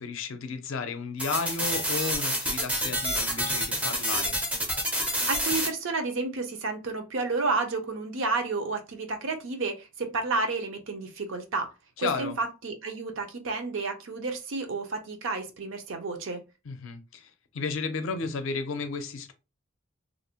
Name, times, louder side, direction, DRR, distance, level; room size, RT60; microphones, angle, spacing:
voice 1, 0.0-4.4 12.0-12.3 16.7-19.3, left 4 dB, 65° left, 0.5 m, -33 dB
sound 1, 1.2-5.7, equal, 5° right, 0.4 m, -28 dB
voice 2, 5.3-11.7 12.0-16.4, right 3 dB, 65° right, 0.5 m, -31 dB
2.5 x 2.1 x 2.8 m
head